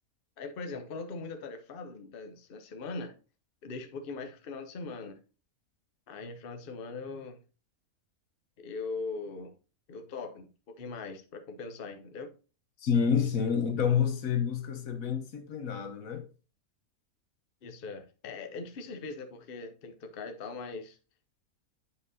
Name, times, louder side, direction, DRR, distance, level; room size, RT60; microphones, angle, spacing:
voice 1, 0.4-3.2 3.6-5.2 6.1-7.4 8.6-9.5 9.9-12.3 17.6-21.0, left 4 dB, 45° left, 0.9 m, -40 dB
voice 2, 12.8-16.2, left 7 dB, 65° left, 1.4 m, -28 dB
8.4 x 5.3 x 2.7 m
omnidirectional pair, 1.6 m